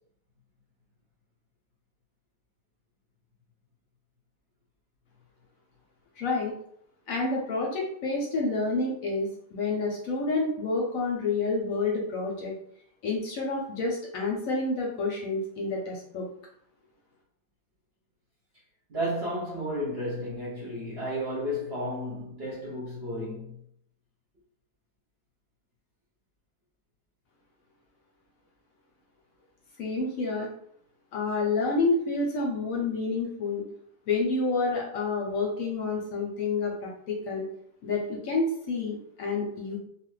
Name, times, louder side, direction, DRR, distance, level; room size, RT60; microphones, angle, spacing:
voice 1, 6.2-6.5 7.1-12.5 13.0-16.3 29.8-30.5 31.1-33.6 34.1-37.5 37.8-39.8, left 3 dB, 65° left, 0.9 m, -29 dB
voice 2, 18.9-23.6, equal, 45° right, 0.9 m, -32 dB
2.6 x 2.4 x 3.1 m
omnidirectional pair, 1.7 m